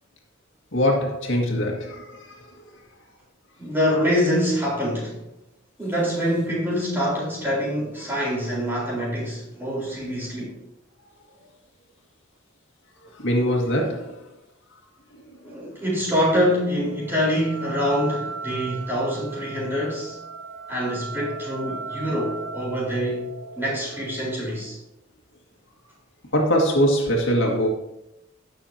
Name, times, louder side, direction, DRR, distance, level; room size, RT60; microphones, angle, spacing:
voice 1, 0.7-2.4 13.1-14.2 26.3-27.7, equal, 70° left, -1 dB, 2.0 m, -22 dB
voice 2, 3.6-5.2 5.8-10.5 15.4-20.2 20.7-23.3 23.6-24.8, equal, 10° right, -6 dB, 4.1 m, -25 dB
sound 1, 16.0-24.6, right 4 dB, 60° right, 1.0 m, -37 dB
17.0 x 6.9 x 2.8 m, 0.88 s
head